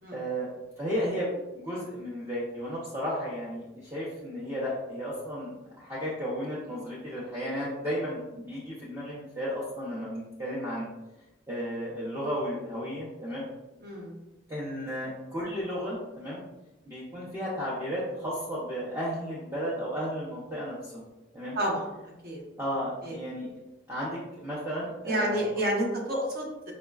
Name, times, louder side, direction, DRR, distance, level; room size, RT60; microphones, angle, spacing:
voice 1, 0.1-0.5 0.8-10.9 11.5-13.5 14.5-16.4 16.9-21.0 21.3-21.6 22.6-23.5 23.9-25.4, equal, 15° right, -9 dB, 0.6 m, -34 dB
voice 2, 13.8-14.2 21.5-21.9 22.2-22.4 23.0-23.2 25.1-26.7, right 1 dB, 50° right, -2 dB, 0.8 m, -30 dB
5.0 x 2.1 x 2.3 m, 0.99 s
head